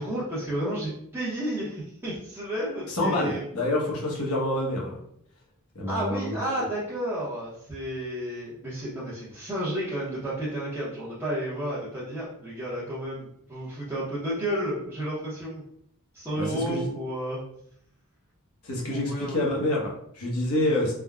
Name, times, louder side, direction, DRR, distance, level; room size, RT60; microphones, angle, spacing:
voice 1, 0.0-3.4 5.9-15.6 16.1-17.4 18.9-19.4, right 1 dB, 10° right, -9 dB, 0.8 m, -32 dB
voice 2, 2.9-5.0 5.7-6.5 16.4-16.9 18.6-20.9, left 1 dB, 75° left, -3 dB, 1.0 m, -27 dB
3.5 x 2.1 x 2.3 m, 0.69 s
head